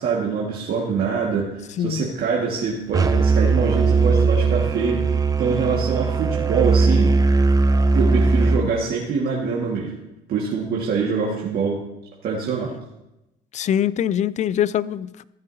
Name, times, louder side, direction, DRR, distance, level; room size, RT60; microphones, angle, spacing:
voice 1, 0.0-1.5 1.8-7.1 7.9-9.9 10.3-11.8 12.2-12.7, right 5 dB, 65° right, 1.8 m, -24 dB
voice 2, 1.8-2.1 13.5-15.2, left 10 dB, 45° left, 0.4 m, -23 dB
Musical instrument, 2.9-8.6, right 4 dB, 20° right, 0.6 m, -19 dB
15.0 x 9.0 x 2.7 m
cardioid pair, 110°, 17 cm